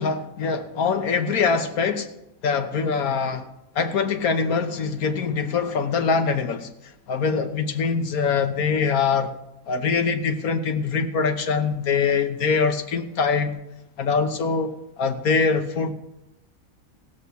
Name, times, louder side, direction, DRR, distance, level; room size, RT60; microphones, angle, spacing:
voice 1, 0.0-2.1 2.4-3.5 3.7-6.7 7.1-9.3 9.7-13.5 14.0-15.9, left 5 dB, 85° left, 1.5 m, -23 dB
15.5 x 6.9 x 6.3 m
omnidirectional pair, 1.5 m